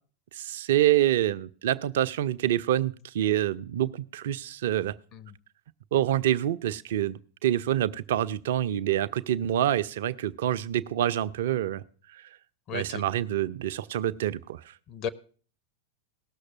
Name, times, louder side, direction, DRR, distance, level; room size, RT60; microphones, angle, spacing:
voice 1, 0.3-5.0 5.9-11.8 12.7-14.6, right 12 dB, 55° right, 13 dB, 0.5 m, -26 dB
voice 2, 12.7-13.1 14.9-15.1, left 7 dB, 35° left, 11 dB, 0.8 m, -35 dB
17.5 x 6.5 x 5.8 m, 0.42 s
figure-of-eight pair, 90°, 0 cm